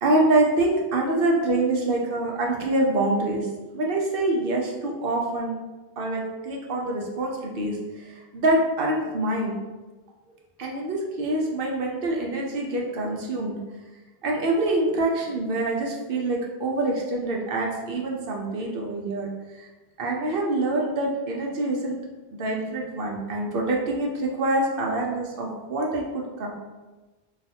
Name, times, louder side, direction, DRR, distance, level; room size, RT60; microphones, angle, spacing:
voice 1, 0.0-3.5 3.7-5.5 6.0-9.6 10.6-13.6 14.2-19.3 19.6-19.7 20.0-22.0 22.3-26.5, right 2 dB, 65° right, -1 dB, 0.8 m, -25 dB
2.5 x 2.4 x 4.1 m, 1.2 s
omnidirectional pair, 1.1 m